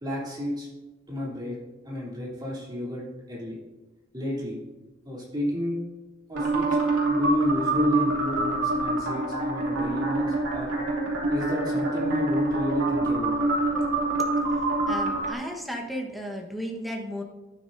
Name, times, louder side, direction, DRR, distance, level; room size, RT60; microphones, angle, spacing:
voice 1, 0.0-0.7 1.1-1.6 1.8-3.5 4.1-4.6 5.0-5.8 6.3-6.7 7.0-10.7 11.3-13.3, equal, 20° right, -5 dB, 3.0 m, -31 dB
sound 1, 6.3-15.3, right 2 dB, 85° right, 2.6 m, -25 dB
voice 2, 14.8-17.2, equal, ahead, 0 dB, 1.2 m, -34 dB
11.5 x 9.5 x 2.6 m, 1.1 s
head